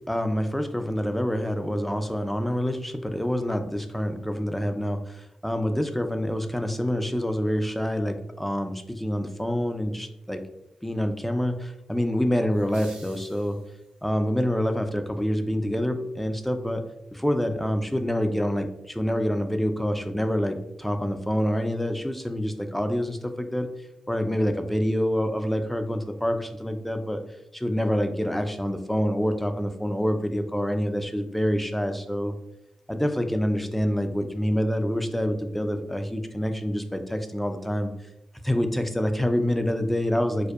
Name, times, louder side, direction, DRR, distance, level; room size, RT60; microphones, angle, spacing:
voice 1, 0.1-10.4 10.8-13.6 14.0-16.8 17.1-23.7 24.1-27.2 27.5-32.3 32.9-37.9 38.4-40.5, equal, 5° left, 7 dB, 0.3 m, -26 dB
sound 1, 12.5-14.1, right 2 dB, 75° right, 0.8 m, -51 dB
2.6 x 2.1 x 2.3 m, 0.86 s
cardioid pair, 45°, 2 cm